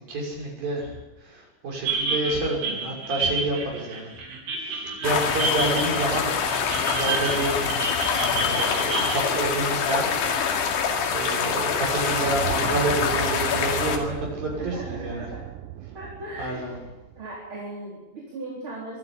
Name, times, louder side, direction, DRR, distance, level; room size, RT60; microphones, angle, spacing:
voice 1, 0.1-4.1 4.6-6.3 7.0-10.1 11.1-15.3 16.4-16.8, right 2 dB, 50° right, -1 dB, 7.6 m, -29 dB
sound 1, 1.8-9.2, right 3 dB, 70° right, 5.4 m, -29 dB
sound 2, 5.0-14.0, left 6 dB, 85° left, 4.6 m, -25 dB
sound 3, 11.9-17.4, right 13 dB, 85° right, 3.1 m, -36 dB
voice 2, 14.5-15.5 15.9-16.9 17.2-19.0, right 2 dB, 30° right, -4 dB, 4.3 m, -38 dB
24.5 x 12.0 x 9.9 m, 1.1 s
omnidirectional pair, 5.2 m